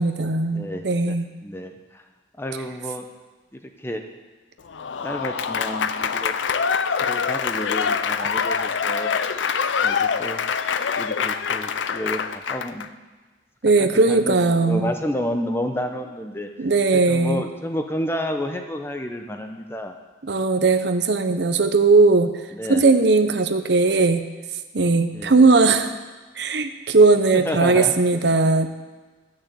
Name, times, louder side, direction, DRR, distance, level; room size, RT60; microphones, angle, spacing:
voice 1, 0.0-1.2 13.6-14.9 16.6-17.4 20.3-22.3 22.7-24.2 24.7-25.9 26.4-28.7, right 3 dB, 60° right, 8 dB, 0.8 m, -18 dB
voice 2, 0.5-1.2 1.4-2.0 2.4-3.1 3.5-4.0 5.0-6.4 7.0-9.2 9.8-10.4 10.8-12.9 13.8-20.0 22.5-22.8 25.1-25.5 27.3-28.4, equal, 10° left, 5 dB, 0.7 m, -31 dB
Applause / Crowd, 4.7-12.9, left 6 dB, 80° left, 0.5 m, -25 dB
13.0 x 6.4 x 8.3 m, 1.3 s
head